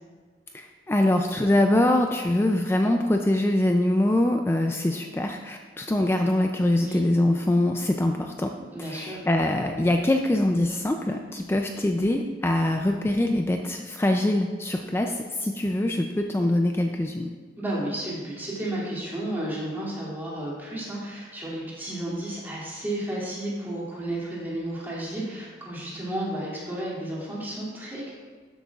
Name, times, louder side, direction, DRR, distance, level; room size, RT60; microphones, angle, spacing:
voice 1, 0.5-8.5 8.8-17.3, left 1 dB, 15° left, 4 dB, 0.3 m, -24 dB
voice 2, 8.7-9.2 17.6-28.1, right 1 dB, 10° right, -7 dB, 2.5 m, -32 dB
12.5 x 7.9 x 2.4 m, 1.5 s
head